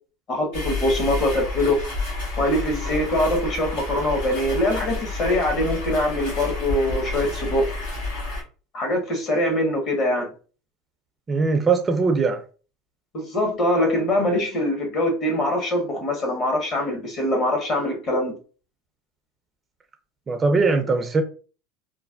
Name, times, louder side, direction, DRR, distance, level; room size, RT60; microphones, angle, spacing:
voice 1, 0.3-1.8 2.4-7.7 8.7-10.3 13.1-18.3, left 1 dB, 45° left, 1.3 m, -23 dB
sound 1, 0.5-8.4, left 2 dB, 80° left, 1.2 m, -30 dB
voice 2, 11.3-12.4 20.3-21.2, right 4 dB, 25° right, 0.4 m, -20 dB
3.1 x 2.2 x 2.4 m
hypercardioid pair, 100°, 0 cm